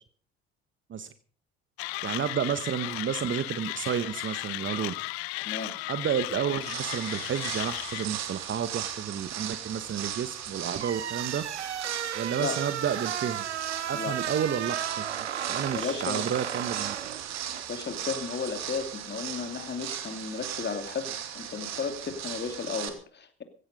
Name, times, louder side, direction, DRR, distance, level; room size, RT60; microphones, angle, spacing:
Mechanisms, 1.8-8.1, left 21 dB, 70° left, 0.7 m, -35 dB
voice 1, 2.0-4.9 5.9-11.4 12.1-13.4 13.9-17.0, right 8 dB, 35° right, 13 dB, 1.2 m, -31 dB
voice 2, 5.4-5.7 12.4-12.6 13.9-14.1 15.7-16.4 17.7-23.4, left 5 dB, 30° left, 8 dB, 2.7 m, -34 dB
sound 1, 6.6-22.9, right 10 dB, 55° right, 2.7 m, -37 dB
sound 2, 10.7-17.7, right 9 dB, 90° right, 0.8 m, -35 dB
16.5 x 13.5 x 5.3 m, 0.44 s
hypercardioid pair, 60°, 33 cm